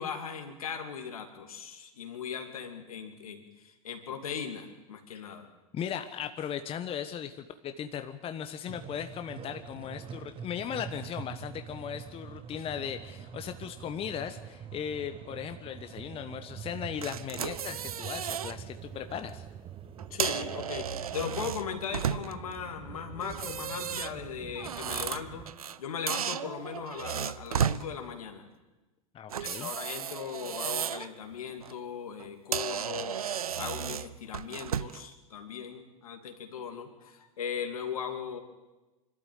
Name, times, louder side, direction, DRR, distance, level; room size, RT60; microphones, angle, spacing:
voice 1, 0.0-5.4 20.1-20.9 21.1-25.5 25.8-28.5 29.4-33.2 33.6-38.4, left 7 dB, 80° left, 5 dB, 2.8 m, -38 dB
voice 2, 5.7-19.4 29.1-29.7, left 8 dB, 30° left, 8 dB, 1.2 m, -37 dB
sound 1, 8.7-25.5, right 8 dB, 30° right, 1.4 m, -45 dB
sound 2, 17.0-18.6 19.0-19.2 20.0-22.5 23.2-25.8 26.1-27.8 29.3-31.1 31.5-31.7 32.2-32.3 32.5-35.1, right 8 dB, 85° right, 0.6 m, -34 dB
24.0 x 13.0 x 9.3 m, 1.1 s
hypercardioid pair, 95°, 18 cm